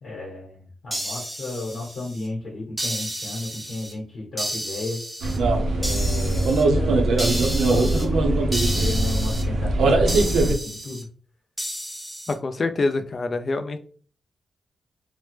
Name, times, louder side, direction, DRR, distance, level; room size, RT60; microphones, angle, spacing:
voice 1, 0.0-5.0 5.7-7.0 7.4-11.1, left 2 dB, 65° left, -4 dB, 1.2 m, -33 dB
sound 1, 0.9-2.3 2.8-3.9 4.4-5.4 5.8-6.6 7.2-8.1 8.5-9.4 10.1-11.0 11.6-12.3, equal, 10° right, 0.7 m, -32 dB
sound 2, 5.2-10.5, right 2 dB, 90° right, 0.5 m, -21 dB
voice 2, 12.3-13.8, left 3 dB, 40° left, 8 dB, 0.4 m, -25 dB
3.2 x 2.0 x 3.1 m, 0.43 s
wide cardioid pair, 115°, 0 cm